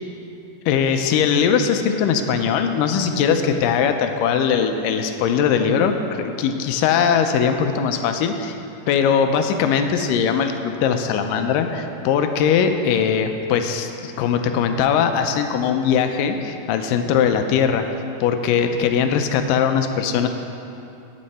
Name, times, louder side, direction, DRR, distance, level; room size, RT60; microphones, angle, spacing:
voice 1, 0.7-8.6 8.9-17.9 18.2-20.3, left 7 dB, 85° left, 6 dB, 2.3 m, -20 dB
11.0 x 8.7 x 4.2 m, 2.8 s
omnidirectional pair, 3.8 m